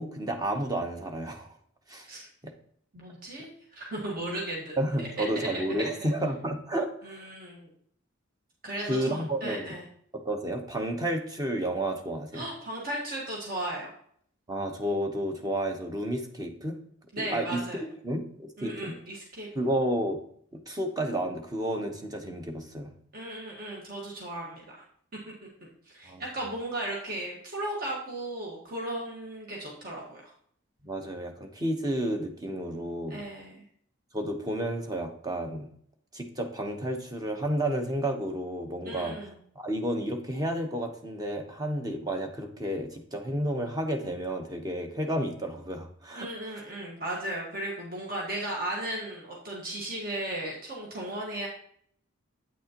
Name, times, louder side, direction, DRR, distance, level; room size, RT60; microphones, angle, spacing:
voice 1, 0.0-1.5 1.9-2.1 2.4-2.5 4.8-7.3 8.9-9.8 10.2-12.4 14.5-16.7 17.2-17.6 18.0-19.0 19.5-20.2 20.5-22.9 26.1-26.2 30.8-33.2 34.1-35.7 36.1-39.2 39.6-46.3, right 1 dB, 20° right, 4 dB, 0.9 m, -31 dB
voice 2, 2.9-5.1 5.3-5.5 5.8-6.1 7.0-7.7 8.6-9.8 12.3-13.9 17.1-17.8 18.6-19.7 23.1-24.7 25.8-30.3 33.1-33.6 38.8-39.3 46.1-51.5, right 1 dB, 45° right, -3 dB, 1.6 m, -36 dB
8.6 x 6.3 x 2.9 m, 0.62 s
head